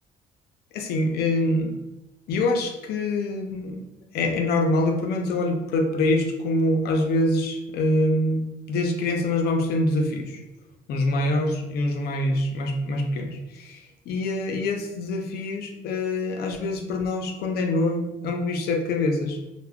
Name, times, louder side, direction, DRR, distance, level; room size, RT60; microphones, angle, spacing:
voice 1, 0.7-1.7 2.3-3.9 4.1-10.4 10.9-19.4, left 2 dB, 70° left, 3 dB, 0.5 m, -25 dB
3.3 x 2.1 x 2.2 m, 0.95 s
cardioid pair, 110°, 17 cm